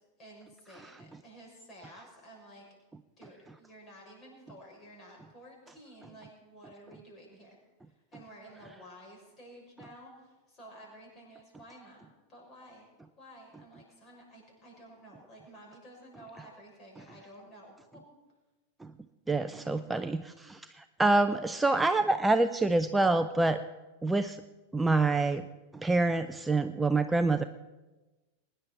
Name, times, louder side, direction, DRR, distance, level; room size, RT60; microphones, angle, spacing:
voice 1, 0.2-2.7 3.2-7.6 7.9-12.9 13.2-18.0, right 1 dB, 30° left, -1 dB, 6.4 m, -52 dB
voice 2, 19.3-23.6 24.0-24.4 24.7-25.5 25.7-27.4, right 2 dB, 10° right, 11 dB, 0.5 m, -26 dB
22.5 x 10.5 x 4.6 m, 1.2 s
figure-of-eight pair, 90°, 0 cm